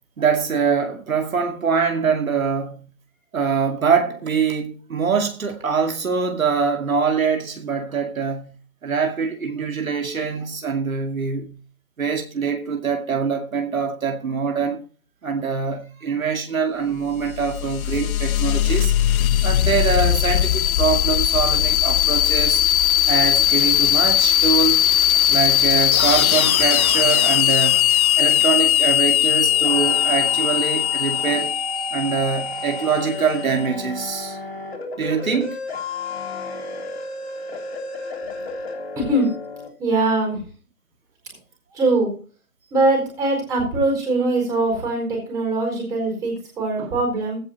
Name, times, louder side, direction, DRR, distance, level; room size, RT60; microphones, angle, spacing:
voice 1, 0.2-2.9 3.3-8.5 8.8-11.6 12.0-14.8 15.2-18.9 19.4-22.6 23.1-24.8 25.3-31.6 31.9-34.4 35.0-35.6 46.8-47.0, right 5 dB, 70° right, 2.4 m, -24 dB
sound 1, 17.1-33.5, left 11 dB, 75° left, 0.5 m, -19 dB
sound 2, 29.3-39.7, left 2 dB, 45° left, 3.3 m, -33 dB
voice 2, 39.0-39.3 39.8-40.4 41.7-42.1 42.7-47.4, right 2 dB, 10° right, 4.3 m, -22 dB
16.0 x 5.6 x 4.2 m
hypercardioid pair, 170°, 43 cm